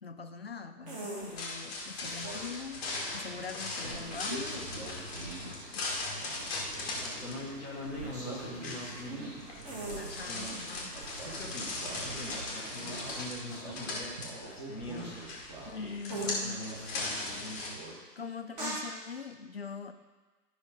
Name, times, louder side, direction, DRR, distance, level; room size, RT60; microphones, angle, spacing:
voice 1, 0.0-2.8 3.1-5.0 5.4-5.9 9.9-10.9 15.7-16.6 18.2-19.9, left 5 dB, 40° left, 7 dB, 0.5 m, -42 dB
sound 1, 0.8-1.4 2.0-3.6 4.1-5.7 6.0-7.5 8.0-10.4 10.9-15.8 16.1-16.3 16.7-17.9 18.5-18.8, right 2 dB, 25° right, 1.7 m, -43 dB
sound 2, 1.2-17.7, left 2 dB, 10° left, 1.0 m, -39 dB
sound 3, 3.8-13.2, right 3 dB, 70° right, 1.5 m, -48 dB
voice 2, 6.6-10.5 10.8-10.9 11.2-17.8, left 1 dB, 5° right, -14 dB, 0.6 m, -44 dB
11.5 x 5.1 x 5.2 m, 1.3 s
figure-of-eight pair, 150°, 50 cm